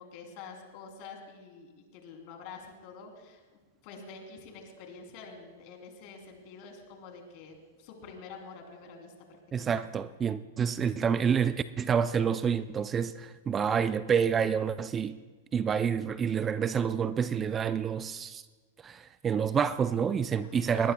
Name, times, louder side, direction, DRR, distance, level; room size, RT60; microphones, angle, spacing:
voice 1, 0.0-3.4 3.8-9.1 9.6-9.8 20.4-20.9, left 5 dB, 50° left, 3 dB, 3.1 m, -47 dB
voice 2, 9.5-15.2 15.5-18.4 18.8-20.9, right 7 dB, 25° right, 14 dB, 0.4 m, -28 dB
20.0 x 19.0 x 2.2 m, 1.4 s
hypercardioid pair, 110°, 0 cm